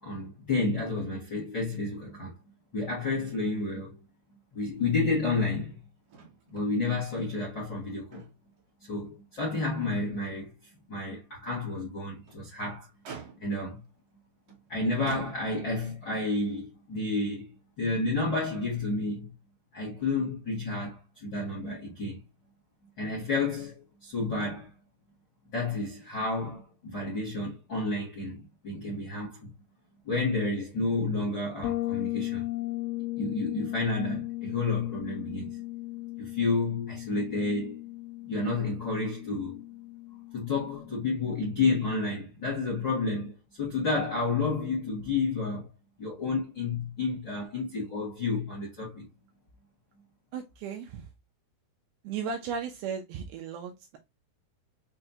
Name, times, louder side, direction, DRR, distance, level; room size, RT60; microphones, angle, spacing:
voice 1, 0.0-2.3 2.7-4.0 4.5-5.8 6.5-8.2 8.9-10.5 10.9-12.9 13.4-13.8 14.7-17.5 17.8-19.3 19.7-22.2 23.0-24.7 25.5-29.5 30.0-32.5 33.2-35.6 36.2-37.8 38.3-39.6 40.3-43.3 43.6-45.7 46.0-49.1, left 3 dB, 55° left, 1.3 m, -30 dB
Motor vehicle (road), 6.1-6.7 7.0-7.1 7.7-8.6 9.0-9.2 9.7-9.8 12.0-12.5 13.0-13.7 14.5-14.6 15.1-15.9 16.9-17.0, right 6 dB, 60° right, 1.7 m, -46 dB
Bass guitar, 31.6-41.3, left 18 dB, 75° left, 2.9 m, -36 dB
voice 2, 50.3-51.1 52.0-54.0, right 6 dB, 80° right, 2.3 m, -36 dB
6.6 x 2.2 x 2.7 m
omnidirectional pair, 4.9 m